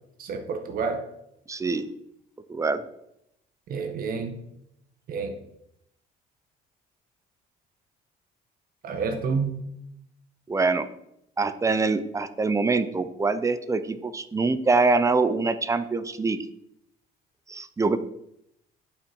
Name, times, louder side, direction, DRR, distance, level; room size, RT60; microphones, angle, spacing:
voice 1, 0.2-1.0 3.7-4.4 5.1-5.4 8.8-9.5, right 5 dB, 60° right, 6 dB, 1.5 m, -29 dB
voice 2, 1.5-1.9 2.5-2.8 10.5-10.9 11.4-16.4 17.5-18.0, right 3 dB, 20° right, 12 dB, 0.7 m, -24 dB
9.5 x 5.8 x 4.6 m, 0.79 s
cardioid pair, 110°, 17 cm